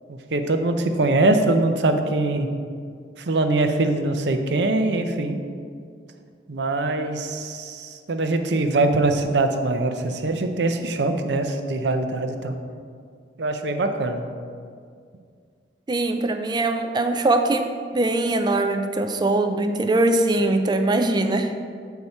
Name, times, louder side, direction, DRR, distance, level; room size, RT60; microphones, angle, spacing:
voice 1, 0.1-2.5 3.2-5.4 6.5-12.6 13.4-14.2, right 2 dB, 70° right, 6 dB, 0.6 m, -23 dB
voice 2, 15.9-21.5, right 2 dB, 25° right, 7 dB, 0.4 m, -22 dB
7.1 x 4.6 x 5.4 m, 2.2 s
head